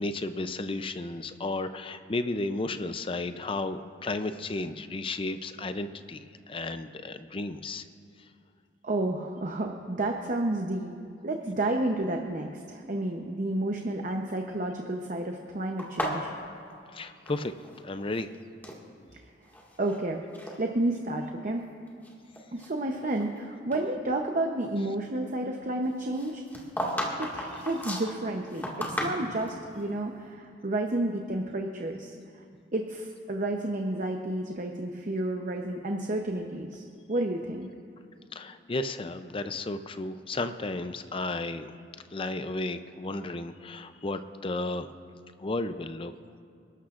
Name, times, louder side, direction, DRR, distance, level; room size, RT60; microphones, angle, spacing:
voice 1, 0.0-7.8 16.9-17.5 17.8-18.3 38.3-41.7 42.1-44.9 45.4-46.1, left 2 dB, 30° left, 10 dB, 0.5 m, -33 dB
voice 2, 8.8-10.9 11.2-16.3 19.8-20.2 20.6-21.6 22.5-26.4 27.2-28.7 29.0-32.2 32.7-37.7, right 1 dB, 45° right, 2 dB, 0.8 m, -31 dB
sound 1, 15.8-17.8 18.0-18.8 19.4-20.0 20.3-20.6 21.2-21.3 21.9-23.4 23.7-23.8 26.1-29.6, equal, 10° left, 1.9 m, -35 dB
28.0 x 12.5 x 2.5 m, 2.5 s
head